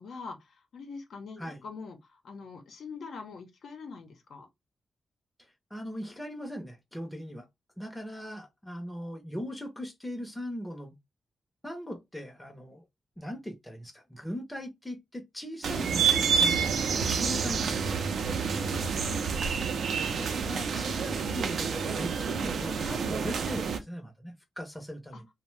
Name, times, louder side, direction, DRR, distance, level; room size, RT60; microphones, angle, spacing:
voice 1, 0.0-4.5 18.3-19.5 25.1-25.2, left 4 dB, 80° left, 0.7 m, -44 dB
voice 2, 5.7-7.5 7.8-10.9 11.6-12.8 13.2-18.0 20.2-25.3, equal, 5° left, 0.6 m, -39 dB
sound 1, 15.6-23.8, right 6 dB, 80° right, 0.4 m, -28 dB
2.6 x 2.1 x 3.1 m
wide cardioid pair, 120°, 0 cm